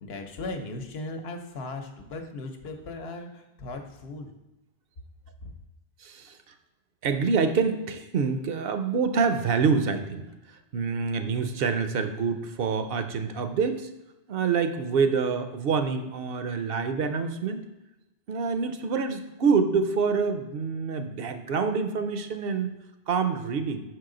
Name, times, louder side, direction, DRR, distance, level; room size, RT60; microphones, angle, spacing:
voice 1, 0.0-4.3 5.4-5.5, left 2 dB, 70° left, 4 dB, 1.0 m, -37 dB
voice 2, 6.0-6.5 7.0-10.3 10.7-13.9 14.3-17.7 18.3-22.8 23.1-23.8, right 5 dB, 65° right, 8 dB, 0.8 m, -26 dB
6.2 x 4.7 x 3.7 m, 1.0 s
omnidirectional pair, 1.1 m